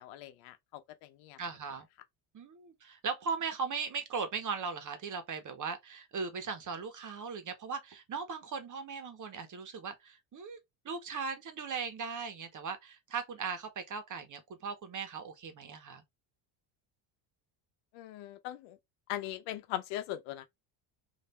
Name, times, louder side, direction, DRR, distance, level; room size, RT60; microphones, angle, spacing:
voice 1, 0.0-1.4 17.9-18.8 19.1-20.5, left 13 dB, 80° left, 0.8 m, -40 dB
voice 2, 1.4-1.9 2.3-10.6 10.8-16.0, right 5 dB, 40° right, 1.2 m, -38 dB
3.3 x 2.8 x 4.1 m
supercardioid pair, 90°, 49 cm